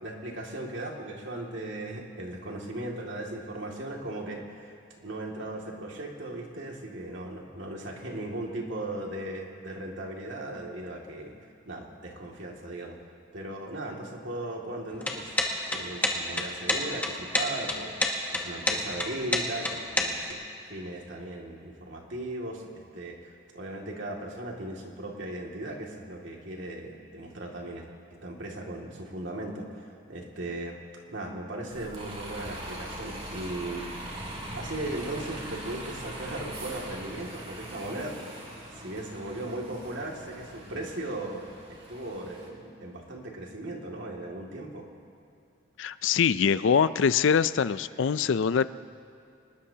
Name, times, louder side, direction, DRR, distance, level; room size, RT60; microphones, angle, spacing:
voice 1, 0.0-11.3 11.7-13.0 13.3-15.4 15.7-18.0 18.3-20.4 20.7-27.9 28.2-30.8 31.1-33.9 34.5-38.2 38.7-44.9, right 1 dB, 70° right, -1 dB, 2.3 m, -37 dB
sound 1, 14.9-20.3, left 2 dB, 10° left, 1.3 m, -28 dB
Bus, 31.7-42.5, right 1 dB, 30° right, 2.2 m, -41 dB
voice 2, 45.8-48.6, left 6 dB, 70° left, 15 dB, 0.4 m, -23 dB
25.0 x 20.0 x 2.9 m, 2.6 s
head